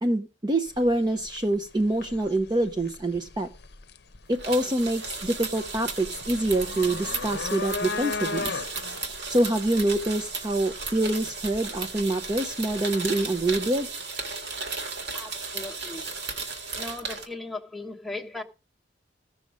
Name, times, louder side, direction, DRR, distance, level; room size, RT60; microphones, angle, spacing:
voice 1, 0.0-3.5 4.3-8.7 9.3-13.9, right 1 dB, 20° right, 0.7 m, -26 dB
sound 1, 0.7-13.8, left 4 dB, 60° left, 0.8 m, -38 dB
sound 2, 4.3-17.2, right 4 dB, 60° right, 2.1 m, -35 dB
voice 2, 15.1-16.0 16.7-18.4, left 2 dB, ahead, 1.1 m, -37 dB
16.0 x 6.3 x 4.9 m
head